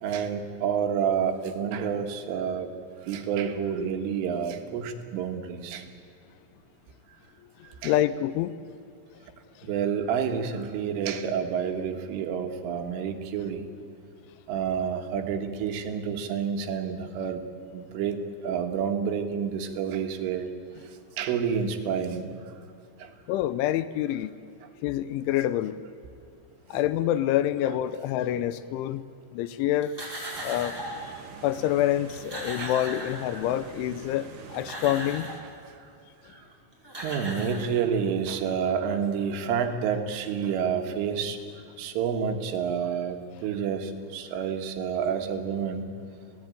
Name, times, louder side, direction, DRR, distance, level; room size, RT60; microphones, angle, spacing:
voice 1, 0.0-2.7 3.1-5.8 7.8-7.9 9.6-13.7 14.5-17.5 17.7-18.2 18.4-20.5 21.2-22.3 23.0-23.1 32.4-32.7 37.0-41.4 41.8-45.9, right 7 dB, 80° right, 5 dB, 4.2 m, -29 dB
voice 2, 7.8-8.5 9.6-9.7 23.3-24.3 24.8-25.8 26.7-29.0 29.3-29.9 30.4-30.8 31.0-31.1 31.4-35.3, left 12 dB, 80° left, 14 dB, 3.1 m, -27 dB
sound 1, 29.8-31.1 31.8-31.9 32.1-33.7 34.3-35.5 36.5-36.6 36.8-38.1, right 1 dB, 5° right, 4.3 m, -38 dB
sound 2, 30.3-35.4, right 5 dB, 50° right, 3.4 m, -45 dB
28.0 x 18.0 x 9.1 m, 2.5 s
omnidirectional pair, 5.7 m